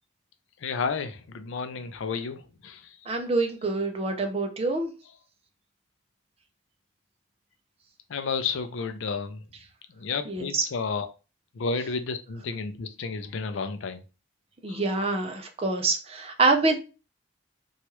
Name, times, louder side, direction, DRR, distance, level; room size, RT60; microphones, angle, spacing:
voice 1, 0.6-2.8 8.1-9.4 10.0-11.1 11.6-14.0 14.7-14.8, left 5 dB, 75° left, 0.4 m, -31 dB
voice 2, 3.1-4.9 10.3-10.7 14.6-16.8, right 3 dB, 30° right, 0.5 m, -26 dB
3.0 x 2.3 x 2.9 m
head